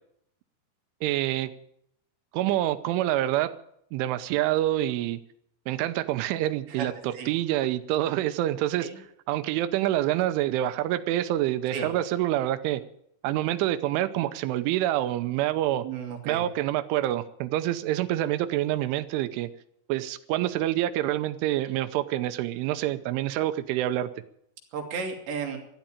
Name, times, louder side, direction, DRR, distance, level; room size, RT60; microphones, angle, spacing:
voice 1, 1.0-1.5 2.3-3.5 3.9-5.2 5.7-8.9 9.3-12.8 13.2-15.9 16.3-19.5 19.9-24.1, right 14 dB, 85° right, 12 dB, 3.3 m, -27 dB
voice 2, 15.8-16.5 24.7-25.6, right 6 dB, 70° right, 1 dB, 4.4 m, -33 dB
13.5 x 11.5 x 8.8 m, 0.72 s
omnidirectional pair, 5.4 m